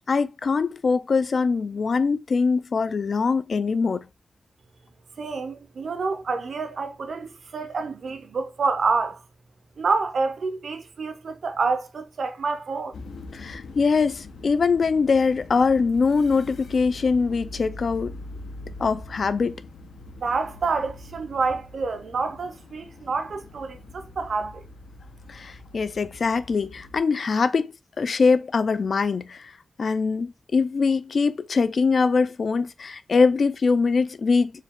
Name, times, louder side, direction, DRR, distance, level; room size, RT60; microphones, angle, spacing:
voice 1, 0.1-4.0 13.3-18.1 18.8-19.5 25.3-29.5 29.8-34.5, left 4 dB, 50° left, 0.3 m, -23 dB
voice 2, 5.2-9.2 9.8-12.9 20.2-24.7, right 4 dB, 60° right, 0.6 m, -28 dB
sound 1, 12.9-27.0, left 2 dB, 90° left, 0.7 m, -42 dB
4.5 x 2.3 x 3.5 m
wide cardioid pair, 155°, 0 cm